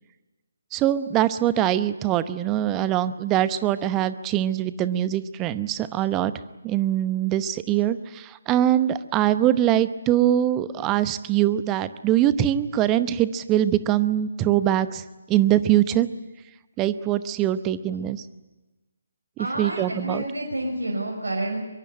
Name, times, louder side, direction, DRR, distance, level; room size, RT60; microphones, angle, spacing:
voice 1, 0.7-6.3 6.6-16.1 16.8-18.2 19.4-20.2, right 12 dB, 15° right, 14 dB, 0.9 m, -23 dB
voice 2, 19.4-21.7, right 1 dB, 65° right, -2 dB, 5.7 m, -29 dB
23.0 x 22.5 x 10.0 m, 1.1 s
figure-of-eight pair, 145°, 0 cm